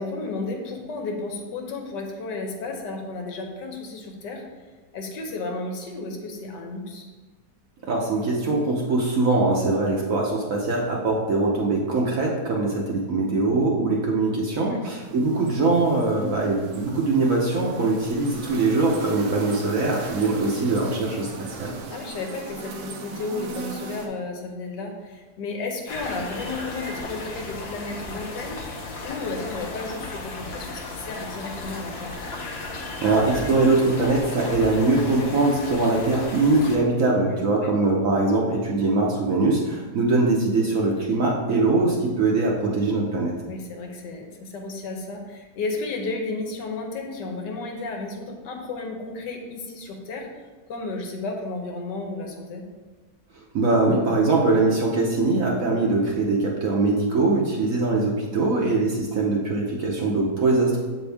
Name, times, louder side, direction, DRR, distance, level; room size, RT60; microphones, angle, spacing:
voice 1, 0.0-4.5 4.9-7.1 14.6-14.9 21.9-28.6 29.0-32.1 37.3-37.7 43.5-50.3 50.7-52.6 58.4-58.5, left 3 dB, 80° left, 2 dB, 1.4 m, -33 dB
voice 2, 7.8-21.7 33.0-43.3 53.5-60.8, right 3 dB, 60° right, -2 dB, 1.0 m, -22 dB
sound 1, 15.0-24.1, right 3 dB, 75° right, 1.4 m, -38 dB
sound 2, 25.9-36.8, left 2 dB, 50° left, 0.8 m, -35 dB
7.3 x 4.4 x 3.4 m, 1.4 s
omnidirectional pair, 1.9 m